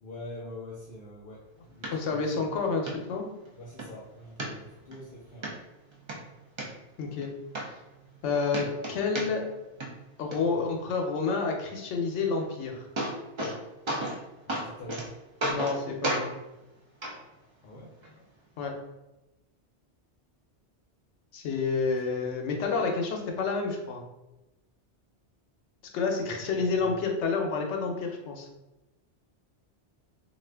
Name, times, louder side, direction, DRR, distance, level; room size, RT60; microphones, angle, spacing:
voice 1, 0.0-2.4 3.5-5.5 10.3-10.6 14.5-15.1 17.6-17.9 26.2-26.3 26.7-26.9, left 1 dB, 60° left, -3 dB, 0.7 m, -44 dB
sound 1, 1.8-1.9 2.4-2.5 2.9-3.0 3.4-3.9 4.4-5.0 5.4-5.5 5.9-6.7 7.2-7.3 7.5-8.2 8.5-9.6 9.8-10.4 12.4-12.5 12.7-13.6 13.9-14.2 14.5-15.1 15.4-15.8 16.0-16.3 17.0-17.1 18.0-18.1, right 1 dB, 45° right, 0.3 m, -32 dB
voice 2, 1.9-3.3 7.0-7.3 8.2-9.4 10.2-12.9 15.5-16.3 18.6-18.7 21.3-24.0 25.9-28.5, left 4 dB, 85° left, 2 dB, 0.9 m, -29 dB
2.5 x 2.4 x 3.3 m, 0.98 s
omnidirectional pair, 1.2 m